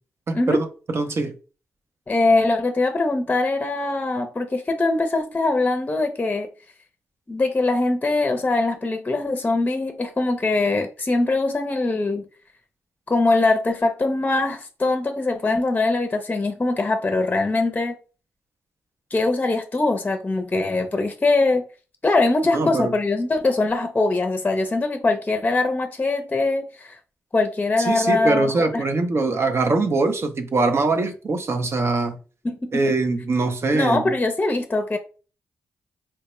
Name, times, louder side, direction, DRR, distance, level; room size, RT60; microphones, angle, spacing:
voice 1, 0.3-1.3 22.5-22.9 27.9-32.2 32.7-34.0, right 3 dB, 50° right, 0.5 m, -22 dB
voice 2, 2.1-6.5 7.3-12.2 13.1-18.0 19.1-21.6 22.0-27.0 27.3-28.8 32.4-32.7 33.7-35.0, left 2 dB, 25° left, 0.5 m, -22 dB
4.3 x 2.1 x 3.0 m
supercardioid pair, 45°, 6 cm